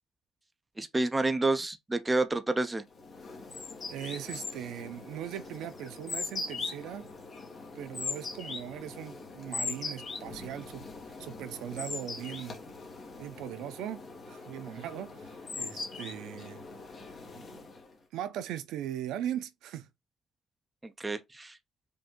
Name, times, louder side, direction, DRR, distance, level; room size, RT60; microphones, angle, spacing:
voice 1, 0.8-2.8 20.8-21.6, right 2 dB, 10° right, 0.4 m, -29 dB
sound 1, 3.0-17.9, left 4 dB, 25° left, 1.2 m, -41 dB
voice 2, 3.9-7.1 7.7-10.9 11.2-12.6 13.2-16.6 17.3-17.6 18.1-19.9, right 11 dB, 65° right, 0.6 m, -39 dB
5.1 x 2.6 x 3.7 m
cardioid pair, 175°, 0 cm